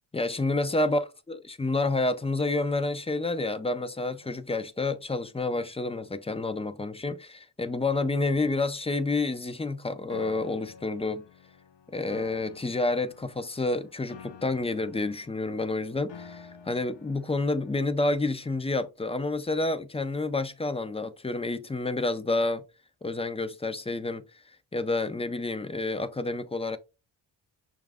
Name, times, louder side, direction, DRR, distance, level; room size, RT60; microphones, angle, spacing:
voice 1, 0.1-11.2 11.9-22.6 23.0-24.2 24.7-26.8, left 2 dB, 15° left, 0.4 m, -29 dB
Piano, 10.1-18.1, left 6 dB, 70° left, 0.8 m, -49 dB
6.1 x 2.4 x 3.4 m
cardioid pair, 95°, 46 cm